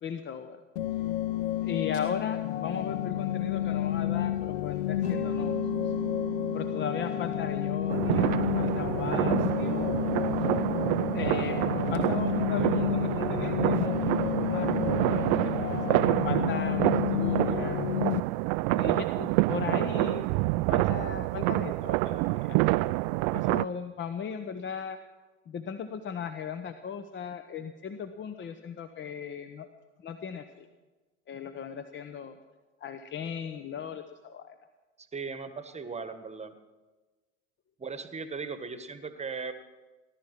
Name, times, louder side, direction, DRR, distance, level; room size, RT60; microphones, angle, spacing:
voice 1, 0.0-0.6 1.6-5.6 5.8-5.9 6.5-10.1 11.1-17.8 18.7-20.3 20.7-23.0 23.3-25.0 25.5-29.7 30.0-30.7 31.3-32.4 32.8-34.5, left 7 dB, 30° left, 9 dB, 0.9 m, -37 dB
sound 1, 0.8-18.2, left 13 dB, 60° left, 0.7 m, -30 dB
Mallet percussion, 5.0-13.8, right 5 dB, 80° left, 5.1 m, -41 dB
sound 2, 7.9-23.6, right 22 dB, 50° right, 0.4 m, -27 dB
voice 2, 35.0-36.5 37.8-39.5, right 5 dB, 15° right, 11 dB, 1.3 m, -38 dB
18.5 x 11.5 x 6.0 m, 1.2 s
figure-of-eight pair, 75°, 38 cm